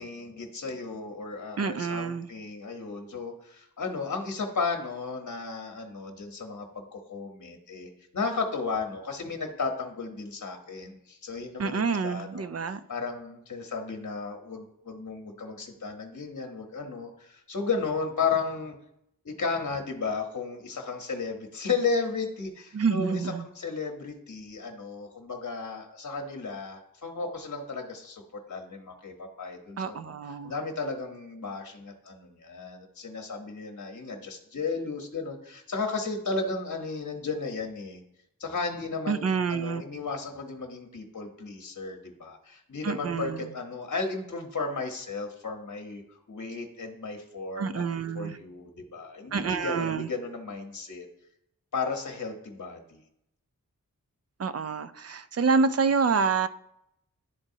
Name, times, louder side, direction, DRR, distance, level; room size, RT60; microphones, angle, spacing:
voice 1, 0.0-18.8 19.2-28.2 28.5-30.1 30.4-38.0 38.4-46.0 46.3-47.8 48.1-51.1 51.7-53.0, left 4 dB, 55° left, 3 dB, 0.9 m, -34 dB
voice 2, 1.6-2.3 11.6-12.8 22.7-23.5 29.8-30.5 39.1-39.8 42.8-43.5 47.6-48.4 49.3-50.1 54.4-56.5, right 5 dB, 45° right, 12 dB, 0.4 m, -27 dB
11.0 x 4.0 x 2.7 m, 0.78 s
wide cardioid pair, 75°, 34 cm